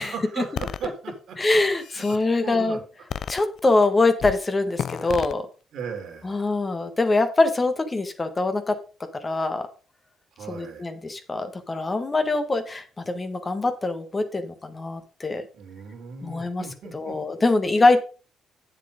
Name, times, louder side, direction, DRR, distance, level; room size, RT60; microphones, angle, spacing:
voice 1, 0.0-1.4 1.9-2.2 2.4-2.8 5.0-5.2 5.7-6.4 10.3-10.9 15.5-17.2, right 6 dB, 70° right, 4 dB, 3.1 m, -37 dB
sound 1, 0.6-0.9 1.6-2.2 3.1-3.8 4.2-4.4 4.8-5.3, left 8 dB, 60° left, 0.5 m, -32 dB
voice 2, 1.4-2.8 3.3-5.4 6.2-8.8 9.2-9.7 10.5-15.4 16.2-16.6 16.9-18.0, left 2 dB, 25° left, 8 dB, 1.5 m, -23 dB
7.8 x 7.4 x 5.1 m, 0.35 s
cardioid pair, 90°, 0 cm